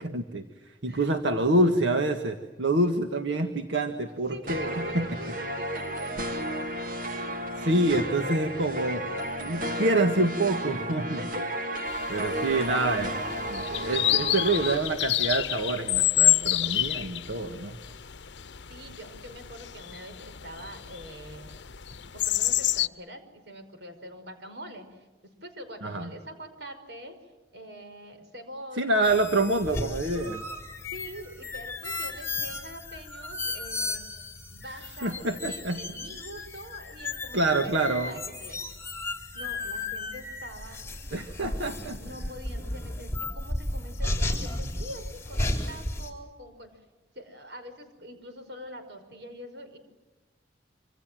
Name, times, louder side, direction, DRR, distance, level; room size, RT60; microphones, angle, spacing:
voice 1, 0.1-5.1 7.6-9.1 9.4-11.2 12.1-13.1 13.5-17.8 25.8-26.1 28.8-30.4 35.0-35.8 37.3-38.2 41.1-42.0, right 2 dB, 90° right, 6 dB, 1.7 m, -26 dB
voice 2, 4.3-6.4 11.2-11.6 12.4-12.8 18.7-21.5 22.1-25.1 25.4-29.2 30.8-34.0 34.5-38.7 39.3-40.8 41.7-46.8 47.1-49.8, equal, 70° right, 7 dB, 5.5 m, -44 dB
sound 1, 4.5-14.7, equal, 45° right, 2.4 m, -33 dB
sound 2, 11.9-22.9, left 14 dB, 75° left, 0.8 m, -29 dB
sound 3, 29.0-46.1, left 2 dB, 15° left, 4.1 m, -34 dB
27.0 x 26.0 x 7.7 m, 1.1 s
head